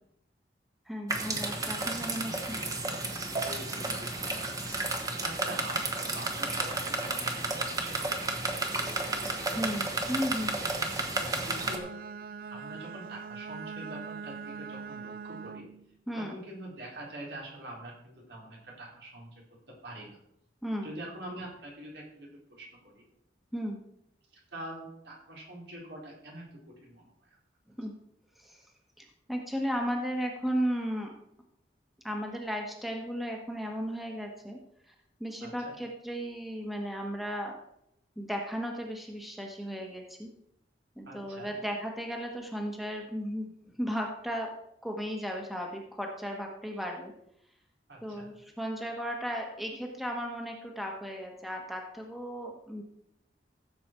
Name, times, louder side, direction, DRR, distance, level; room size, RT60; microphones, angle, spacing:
voice 1, 0.9-2.6 9.5-10.6 16.1-16.4 20.6-20.9 23.5-23.8 27.8-27.9 28.4-28.7 29.0-31.1 32.0-34.6 34.8-34.9 35.2-37.5 38.2-40.3 41.0-44.5 44.8-47.1 48.0-52.8, equal, ahead, 1 dB, 1.3 m, -35 dB
sound 1, 1.1-11.8, right 2 dB, 20° right, 1.2 m, -32 dB
voice 2, 3.4-4.8 5.1-9.0 9.3-9.6 10.8-11.0 11.5-11.9 12.5-15.7 16.2-19.3 19.7-20.2 20.8-23.0 24.3-27.1 35.4-35.7 41.1-41.5 47.9-48.3, right 1 dB, 80° right, -2 dB, 4.0 m, -45 dB
Bowed string instrument, 11.4-15.9, right 6 dB, 55° right, 0.3 m, -42 dB
15.0 x 7.5 x 4.5 m, 0.78 s
head